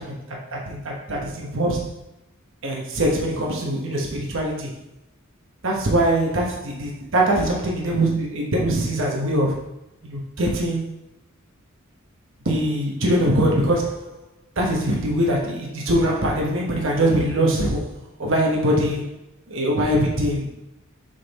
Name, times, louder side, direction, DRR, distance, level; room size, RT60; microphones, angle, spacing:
voice 1, 0.0-1.9 2.6-4.7 5.6-9.6 10.0-10.8 12.4-14.1 14.6-19.1 19.5-20.5, right 1 dB, 65° right, -1 dB, 1.1 m, -22 dB
6.5 x 4.0 x 4.0 m, 0.89 s
head